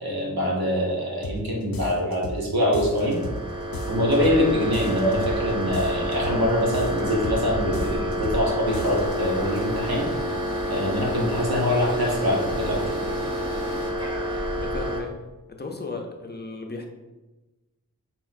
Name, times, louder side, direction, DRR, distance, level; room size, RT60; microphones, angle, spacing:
voice 1, 0.0-3.2 3.9-10.1 10.7-12.9, left 1 dB, 90° right, -3 dB, 1.1 m, -24 dB
sound 1, 1.2-1.4 1.7-2.4 2.7-3.4 3.7-4.4 4.7-5.4 5.7-6.4 6.7-7.4 7.7-8.4 8.7-9.2, left 2 dB, 75° left, 0.6 m, -34 dB
sound 2, 2.8-15.0, equal, 15° right, 0.8 m, -28 dB
sound 3, 8.6-13.9, equal, 15° left, 1.0 m, -37 dB
voice 2, 14.6-15.1 15.5-16.9, left 3 dB, 30° left, 3 dB, 0.6 m, -35 dB
4.0 x 3.8 x 2.6 m, 1.1 s
wide cardioid pair, 60°, 36 cm